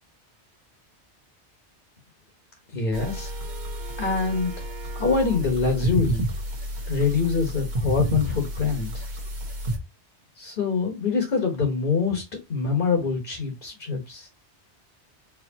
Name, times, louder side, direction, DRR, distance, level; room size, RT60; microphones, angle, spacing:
voice 1, 2.7-3.3 4.0-4.5 4.9-6.2 6.9-9.0 10.4-14.3, left 4 dB, 50° left, 1.3 m, -25 dB
sound 1, 2.9-9.8, equal, 45° right, 1.1 m, -30 dB
4.7 x 3.0 x 2.8 m
omnidirectional pair, 1.2 m